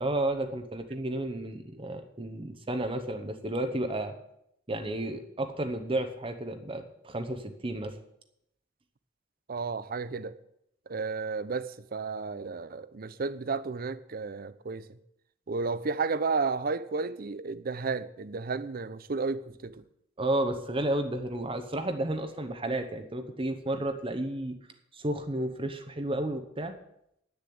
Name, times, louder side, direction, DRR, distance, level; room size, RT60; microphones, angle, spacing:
voice 1, 0.0-4.1 4.7-7.9 20.2-24.6 24.9-26.7, right 1 dB, 30° right, 1.0 m, -32 dB
voice 2, 9.5-10.4 10.9-15.0 15.5-19.8, right 4 dB, 50° right, 0.6 m, -32 dB
9.8 x 7.0 x 8.6 m
head